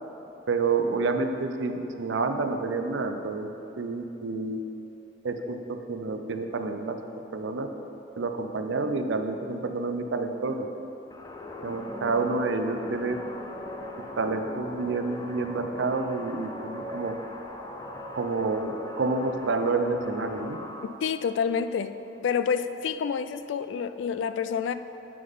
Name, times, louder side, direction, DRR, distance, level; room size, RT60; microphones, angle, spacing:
voice 1, 0.5-3.5 3.8-4.6 5.2-7.0 7.3-7.7 8.2-10.7 11.6-13.2 14.2-17.2 18.1-20.6, right 3 dB, 75° right, 7 dB, 0.5 m, -29 dB
sound 1, 11.1-20.9, left 1 dB, 20° left, 0.5 m, -39 dB
voice 2, 21.0-22.0 22.2-24.7, left 6 dB, 75° left, 11 dB, 0.3 m, -28 dB
9.3 x 3.8 x 5.4 m, 3.0 s
head